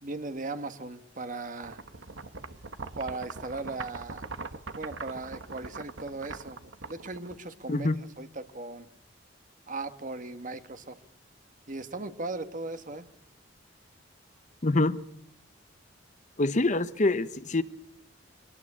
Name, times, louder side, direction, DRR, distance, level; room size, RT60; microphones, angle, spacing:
voice 1, 0.0-1.8 2.9-4.3 4.8-8.9 9.7-11.0 11.7-13.1, right 3 dB, 45° right, 10 dB, 1.4 m, -38 dB
sound 1, 1.6-7.8, right 4 dB, 85° right, 1.4 m, -42 dB
voice 2, 7.7-8.0 14.6-15.0 16.4-17.6, left 2 dB, 40° left, 13 dB, 0.9 m, -25 dB
23.5 x 18.5 x 8.6 m, 0.77 s
head